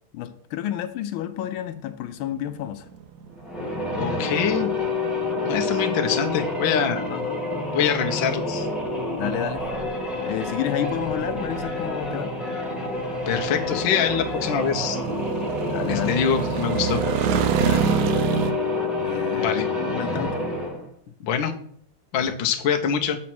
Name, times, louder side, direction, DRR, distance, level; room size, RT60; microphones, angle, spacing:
voice 1, 0.1-2.8 7.1-7.4 9.2-9.6 10.3-12.3 15.6-16.1 17.6-17.9 19.0-20.4 22.2-22.3, left 11 dB, 90° left, 9 dB, 1.5 m, -30 dB
sound 1, 2.4-18.5, right 8 dB, 70° right, 1.0 m, -30 dB
sound 2, 3.4-20.9, left 2 dB, ahead, 1.5 m, -28 dB
voice 2, 4.0-4.7 5.5-7.0 7.7-8.7 13.3-15.0 15.9-17.0 19.3-19.7 21.2-21.5 22.1-23.2, left 7 dB, 70° left, 5 dB, 1.5 m, -24 dB
7.4 x 4.3 x 5.9 m, 0.64 s
omnidirectional pair, 2.2 m